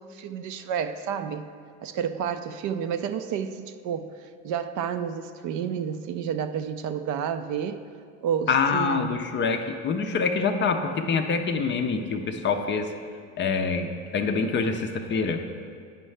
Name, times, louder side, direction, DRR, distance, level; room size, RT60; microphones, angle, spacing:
voice 1, 0.0-1.5 1.8-7.8 8.2-9.1, right 8 dB, 50° right, 9 dB, 0.4 m, -30 dB
voice 2, 8.5-12.9 13.4-15.4, left 5 dB, 30° left, 5 dB, 0.5 m, -25 dB
8.9 x 5.3 x 3.2 m, 2.3 s
supercardioid pair, 100°, 40 cm